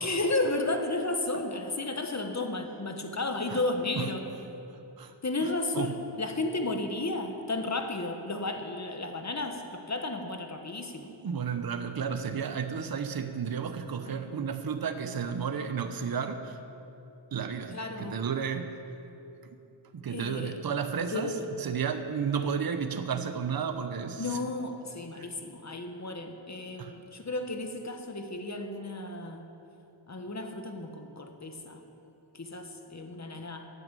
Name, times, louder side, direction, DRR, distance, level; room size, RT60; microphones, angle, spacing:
voice 1, 0.0-4.3 5.2-11.1 14.1-14.4 17.7-18.2 20.1-20.6 21.1-21.5 24.2-29.5 30.1-31.8 32.3-33.7, left 2 dB, 35° left, 5 dB, 1.3 m, -33 dB
voice 2, 5.4-6.0 11.2-16.6 17.3-18.8 19.9-24.4 25.1-25.3 26.8-26.9, right 6 dB, 50° right, 8 dB, 0.8 m, -32 dB
10.5 x 9.4 x 7.5 m, 2.9 s
wide cardioid pair, 85°, 47 cm